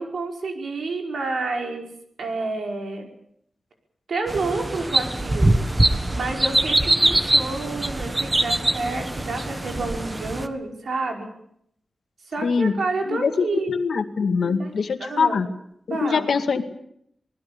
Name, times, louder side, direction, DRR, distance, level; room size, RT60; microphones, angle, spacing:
voice 1, 0.0-1.9 2.2-3.1 4.1-5.7 6.1-11.3 12.3-13.7 14.4-14.7 15.0-15.5 15.9-16.3, right 3 dB, 85° right, 2 dB, 5.4 m, -29 dB
sound 1, 4.3-10.5, right 1 dB, 20° right, 1.4 m, -23 dB
voice 2, 12.4-12.7 13.0-15.5 15.9-16.6, left 5 dB, 80° left, 7 dB, 2.1 m, -23 dB
26.5 x 20.0 x 7.1 m, 0.71 s
wide cardioid pair, 140°, 0 cm